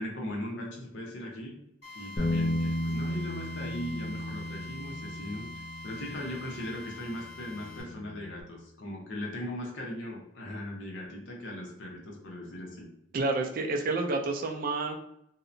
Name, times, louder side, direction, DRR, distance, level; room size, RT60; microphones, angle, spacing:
voice 1, 0.0-1.5 1.9-5.5 5.8-12.9, left 1 dB, 80° left, -1 dB, 0.8 m, -38 dB
Drill, 1.8-7.8, left 2 dB, 60° left, 1.5 m, -45 dB
Bass guitar, 2.2-8.4, left 1 dB, 30° left, 0.4 m, -35 dB
voice 2, 13.1-15.0, right 3 dB, 50° right, 4 dB, 0.4 m, -29 dB
2.8 x 2.1 x 2.5 m, 0.77 s
head